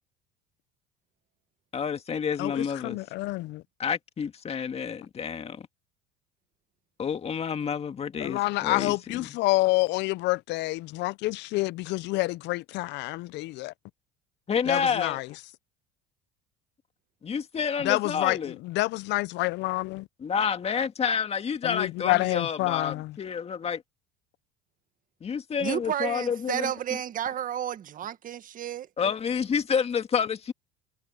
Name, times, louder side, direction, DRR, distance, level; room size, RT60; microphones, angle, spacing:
voice 1, 1.7-3.0 3.8-5.7 7.0-9.3 14.5-15.2 17.2-18.5 20.2-23.8 25.2-26.7 29.0-30.5, left 6 dB, 30° left, 2.0 m, -29 dB
voice 2, 2.4-3.6 8.2-13.7 14.7-15.3 17.8-20.1 21.6-23.1, left 20 dB, 60° left, 0.6 m, -28 dB
voice 3, 25.6-28.9, right 10 dB, 40° right, 1.7 m, -31 dB
supercardioid pair, 110°, 21 cm